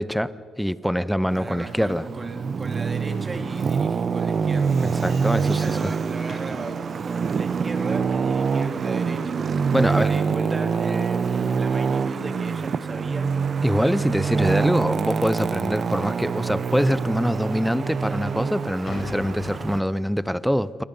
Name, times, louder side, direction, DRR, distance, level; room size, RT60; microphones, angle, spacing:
voice 1, 0.0-2.1 4.8-5.9 9.7-10.1 13.6-20.8, equal, ahead, 0.8 m, -24 dB
voice 2, 1.3-4.8 5.4-9.4 9.8-13.3 14.3-14.4, right 2 dB, 25° right, 3.1 m, -36 dB
Traffic noise roadway noise, 1.3-19.8, right 5 dB, 45° right, 0.8 m, -25 dB
sound 1, 4.1-6.7 9.5-9.6 10.1-10.3 10.6-10.7 11.2-11.3 12.4-12.6 13.0-13.1 13.8-13.9 14.2-14.3 14.8-14.9 16.3-16.6 17.4-17.5 17.9-20.2, left 2 dB, 35° left, 7.9 m, -42 dB
28.0 x 24.0 x 5.5 m
cardioid pair, 90°, 0 cm